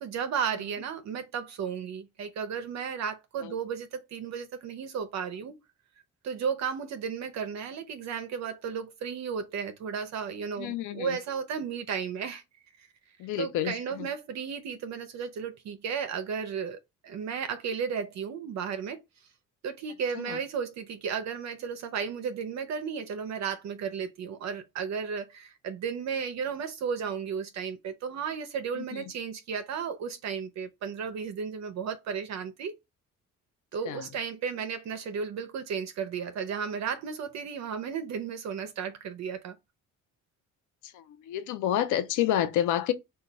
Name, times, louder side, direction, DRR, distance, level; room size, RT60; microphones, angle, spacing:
voice 1, 0.0-5.5 6.2-12.4 12.8-12.9 13.4-19.0 19.6-32.7 33.7-39.6, right 6 dB, 65° right, 0.5 m, -34 dB
voice 2, 10.6-11.2 13.2-14.1 20.1-20.4 28.7-29.0 33.9-34.1 40.8-42.9, left 11 dB, 85° left, 0.5 m, -29 dB
3.2 x 2.3 x 3.8 m
cardioid pair, 90°, 30 cm